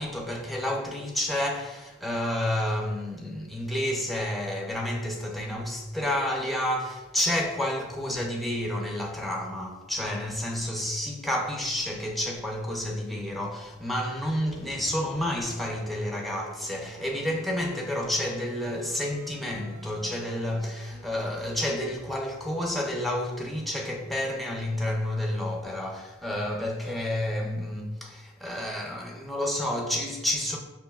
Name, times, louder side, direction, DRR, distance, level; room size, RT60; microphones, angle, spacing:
voice 1, 0.0-30.6, left 1 dB, ahead, 0.4 m, -30 dB
sound 1, 14.5-24.0, right 3 dB, 90° right, 0.4 m, -50 dB
6.0 x 2.6 x 2.2 m
head